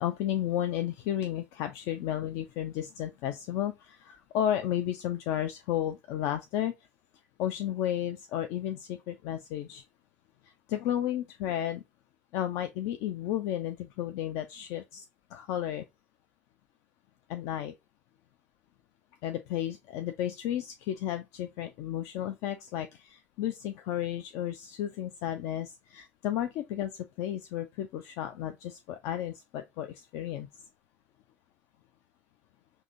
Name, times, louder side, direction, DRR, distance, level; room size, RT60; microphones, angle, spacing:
voice 1, 0.0-6.7 7.4-9.8 10.4-11.8 12.3-15.8 17.3-17.8 19.2-30.5, left 11 dB, 55° left, 0.4 m, -33 dB
5.9 x 2.7 x 2.6 m
figure-of-eight pair, 60°, 6 cm